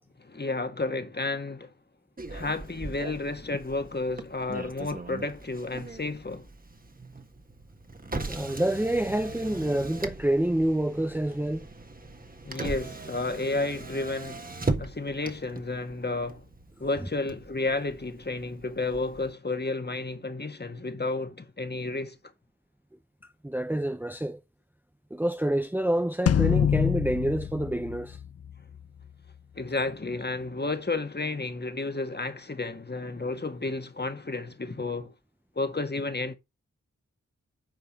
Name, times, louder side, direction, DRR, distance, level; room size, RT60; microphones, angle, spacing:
voice 1, 0.2-1.7 2.3-6.5 12.4-14.5 14.8-16.4 16.8-22.2 29.5-35.1 35.5-36.4, left 3 dB, 35° left, 1.7 m, -31 dB
Motor vehicle (road), 2.2-19.3, right 2 dB, 30° right, 1.6 m, -39 dB
voice 2, 8.3-11.7 23.4-24.4 25.1-28.2, right 1 dB, 5° right, 0.7 m, -27 dB
sound 1, 26.3-28.8, left 8 dB, 55° left, 0.5 m, -25 dB
9.1 x 4.8 x 5.6 m
cardioid pair, 60°, 30 cm